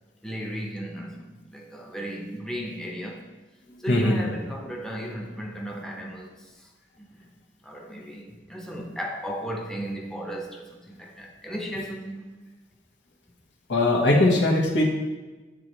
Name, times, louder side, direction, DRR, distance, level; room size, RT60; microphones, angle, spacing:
voice 1, 0.2-3.3 3.8-6.7 7.0-7.3 7.6-12.4, equal, 5° left, 0 dB, 0.6 m, -35 dB
voice 2, 13.7-14.8, left 2 dB, 90° left, -1 dB, 1.0 m, -20 dB
8.2 x 3.9 x 3.0 m, 1.2 s
head